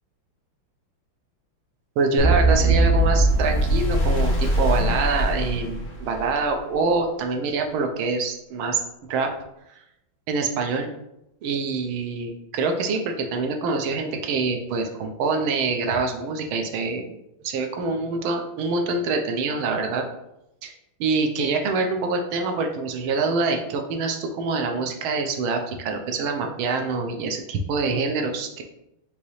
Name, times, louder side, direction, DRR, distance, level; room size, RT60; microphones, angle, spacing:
voice 1, 2.0-8.8 9.1-9.3 10.3-10.9 11.4-17.1 17.4-20.0 20.6-20.7 21.0-28.6, right 4 dB, 80° right, 4 dB, 1.5 m, -25 dB
sound 1, 2.2-6.3, right 1 dB, 45° left, 1.1 m, -21 dB
5.4 x 2.8 x 3.1 m, 0.84 s
omnidirectional pair, 2.3 m